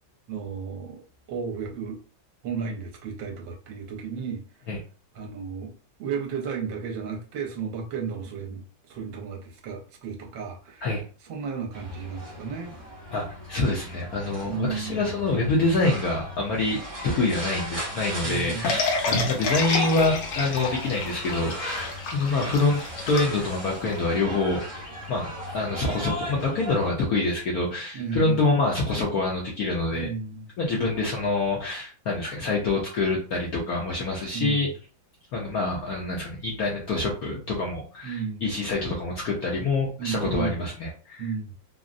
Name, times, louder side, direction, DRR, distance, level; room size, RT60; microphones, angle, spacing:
voice 1, 0.3-1.0 1.3-2.0 2.4-4.4 5.1-5.7 6.0-10.9 11.2-12.7 14.4-15.1 18.2-18.7 27.9-28.5 29.9-30.5 34.3-34.7 38.0-38.5 40.0-40.7 41.2-41.5, right 6 dB, 75° right, 1.4 m, -33 dB
sound 1, 11.7-26.9, left 1 dB, 35° right, 0.5 m, -37 dB
voice 2, 13.1-24.6 25.1-30.1 30.6-34.7 35.3-41.2, left 3 dB, 70° left, 0.9 m, -26 dB
sound 2, 18.6-24.0, left 4 dB, 85° left, 1.6 m, -29 dB
3.6 x 2.0 x 2.5 m
omnidirectional pair, 2.2 m